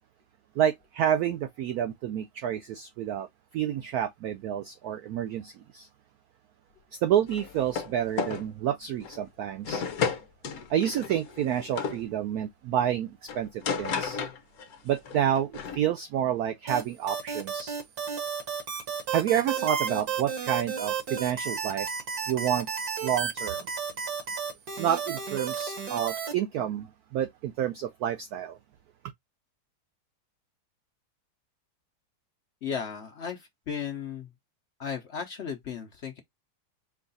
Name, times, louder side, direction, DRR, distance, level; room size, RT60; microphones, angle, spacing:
voice 1, 0.6-3.3 3.5-5.9 6.9-9.8 10.7-14.2 14.8-17.8 19.1-21.9 22.3-22.7 23.0-23.7 24.8-28.6, right 10 dB, 85° right, 0.8 m, -29 dB
sound 1, 7.3-7.9 8.2-8.5 9.0-9.2 9.6-12.0 13.3-14.8 15.0-15.8, left 6 dB, 60° left, 1.1 m, -33 dB
sound 2, 16.7-26.3, right 6 dB, 55° right, 1.6 m, -32 dB
voice 2, 32.6-34.3 34.8-36.2, left 7 dB, 80° left, 0.6 m, -35 dB
4.7 x 2.3 x 3.9 m
omnidirectional pair, 2.1 m